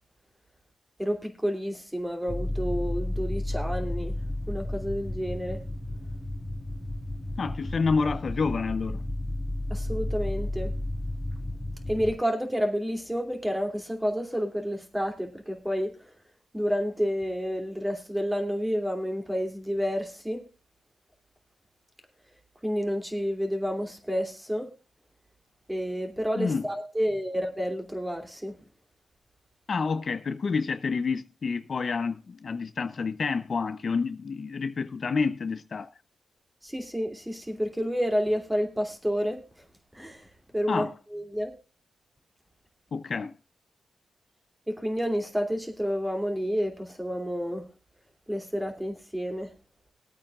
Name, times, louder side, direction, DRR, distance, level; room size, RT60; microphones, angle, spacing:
voice 1, 1.0-4.1 4.5-5.6 9.7-10.7 11.9-15.9 16.5-20.4 22.6-24.7 25.7-28.5 36.6-39.4 40.0-40.2 40.5-40.9 41.1-41.5 44.7-47.6 48.3-49.5, equal, 10° right, 2.6 m, -29 dB
sound 1, 2.3-12.1, left 1 dB, 15° left, 2.0 m, -32 dB
voice 2, 7.4-9.0 26.4-26.7 29.7-35.9 40.7-40.9 42.9-43.3, left 4 dB, 50° left, 0.6 m, -28 dB
21.0 x 8.7 x 2.4 m
cardioid pair, 85°, 0 cm